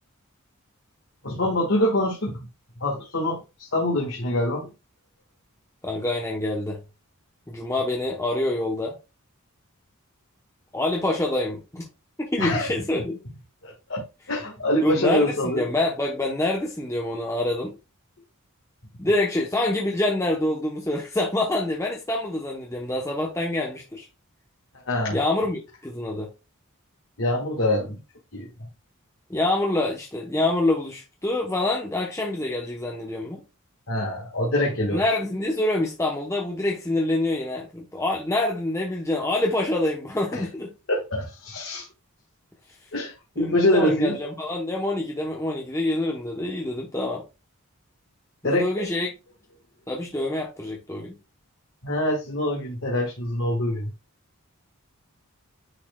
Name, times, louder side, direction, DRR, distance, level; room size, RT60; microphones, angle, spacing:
voice 1, 1.2-2.4 2.8-3.4 3.7-4.7 12.4-12.7 13.6-15.6 24.9-25.2 27.2-28.0 28.3-28.5 33.9-35.0 40.3-40.4 40.9-41.9 42.9-44.2 48.4-48.7 51.8-53.9, left 1 dB, 60° left, 1.6 m, -24 dB
voice 2, 5.8-6.8 7.5-9.0 10.7-11.9 12.2-13.2 14.8-17.8 19.0-24.1 25.1-26.3 29.3-33.4 34.9-40.7 43.4-47.2 48.4-49.1 49.9-51.2, left 2 dB, 15° left, 0.8 m, -26 dB
9.7 x 4.2 x 2.3 m
head